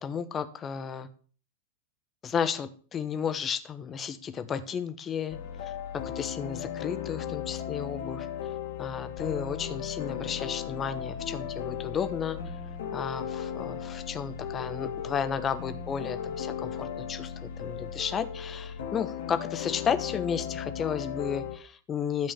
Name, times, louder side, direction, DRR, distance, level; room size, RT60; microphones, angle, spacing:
voice 1, 0.0-1.1 2.2-5.4 5.9-8.3 8.8-12.4 12.9-22.3, left 7 dB, 25° left, 10 dB, 1.2 m, -33 dB
sound 1, 5.3-21.6, left 8 dB, 60° left, 2.2 m, -36 dB
13.0 x 5.3 x 7.0 m, 0.42 s
figure-of-eight pair, 90°, 0 cm